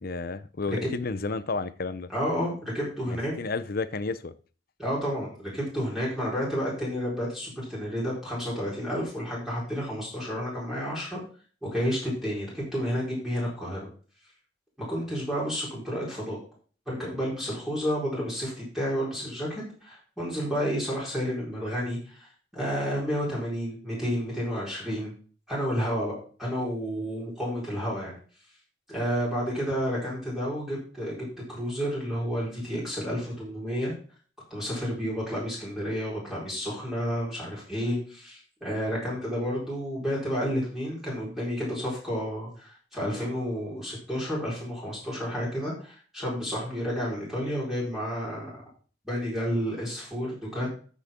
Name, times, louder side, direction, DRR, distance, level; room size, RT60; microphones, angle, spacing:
voice 1, 0.0-2.1 3.1-4.3, left 3 dB, 50° left, 14 dB, 0.7 m, -31 dB
voice 2, 2.1-3.3 4.8-11.2 11.6-13.9 14.9-16.4 16.9-25.1 25.5-28.2 28.9-33.9 34.5-48.5 49.0-50.7, equal, ahead, -6 dB, 4.4 m, -31 dB
13.5 x 6.3 x 3.7 m, 0.41 s
head